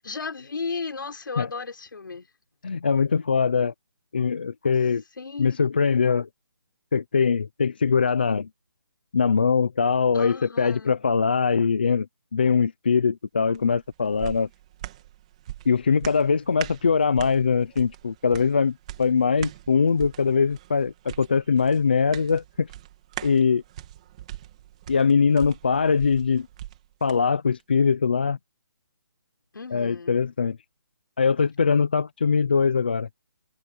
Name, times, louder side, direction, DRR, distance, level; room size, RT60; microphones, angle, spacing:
voice 1, 0.0-2.3 5.2-5.6 10.1-11.0 29.5-30.2, left 4 dB, 60° left, 6.0 m, -35 dB
voice 2, 2.6-3.7 4.1-5.0 5.4-6.3 6.9-8.5 9.1-12.1 12.3-14.5 15.7-22.7 23.2-23.6 24.9-26.5 27.0-28.4 29.7-30.6 31.2-33.1, left 5 dB, 25° left, 0.6 m, -22 dB
sound 1, 13.5-27.2 27.6-27.7, right 13 dB, 15° right, 2.5 m, -42 dB
hypercardioid pair, 180°, 13 cm